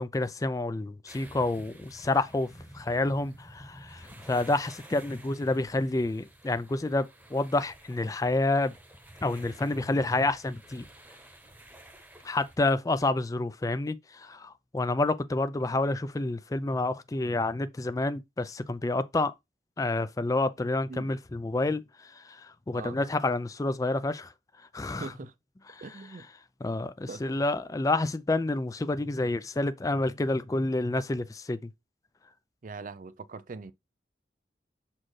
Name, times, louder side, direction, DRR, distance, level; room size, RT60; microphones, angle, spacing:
voice 1, 0.0-2.5 2.7-8.7 9.2-10.8 12.2-19.3 19.8-24.3 24.7-25.1 25.7-25.8 26.6-31.7, left 2 dB, 20° left, 0.4 m, -29 dB
Beach near Oban, 1.1-12.6, right 1 dB, 10° right, 1.0 m, -51 dB
voice 2, 24.9-25.3 25.8-26.3 27.1-27.5 32.6-33.7, right 4 dB, 45° right, 0.5 m, -42 dB
7.3 x 4.3 x 3.2 m
head